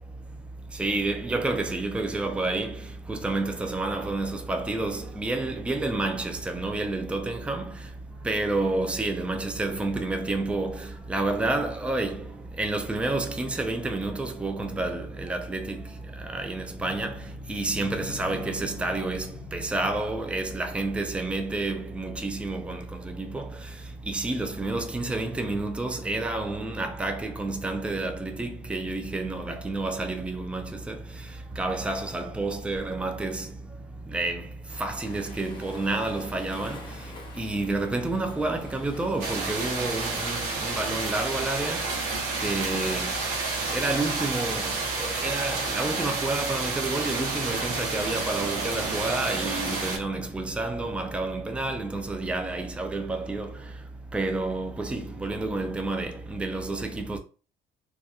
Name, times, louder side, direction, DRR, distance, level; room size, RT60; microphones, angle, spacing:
voice 1, 0.8-2.8 3.1-7.7 8.2-12.2 12.6-15.8 16.3-17.1 17.5-23.5 24.1-31.0 31.6-33.5 34.1-34.4 34.8-36.8 37.4-41.9 42.4-43.1 43.7-44.7 45.0-53.5 54.1-57.2, right 2 dB, 5° right, 0.4 m, -29 dB
sound 1, 14.6-15.2 16.7-20.6, left 11 dB, 65° left, 0.4 m, -44 dB
Waves surf, 34.7-41.4, left 3 dB, 25° left, 0.7 m, -47 dB
sound 2, 39.2-50.0, right 3 dB, 85° right, 0.9 m, -30 dB
2.4 x 2.4 x 2.3 m
cardioid pair, 110°, 17 cm